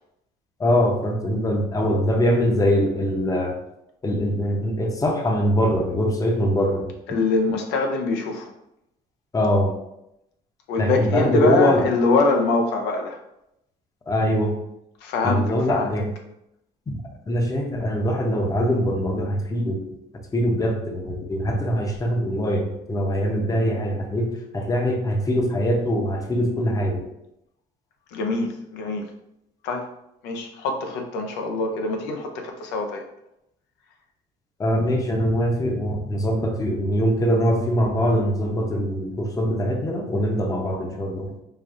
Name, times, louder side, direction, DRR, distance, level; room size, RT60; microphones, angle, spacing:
voice 1, 0.6-3.5 4.0-6.9 9.3-9.7 10.8-11.8 14.1-14.5 15.2-16.1 17.3-19.8 20.3-27.0 34.6-41.3, equal, 20° left, 2 dB, 0.7 m, -22 dB
voice 2, 7.1-8.5 10.7-13.2 15.0-15.9 28.1-29.0 29.6-29.9 30.2-33.0, left 3 dB, 90° left, 3 dB, 0.6 m, -24 dB
5.1 x 2.6 x 2.4 m, 0.83 s
cardioid pair, 110°, 17 cm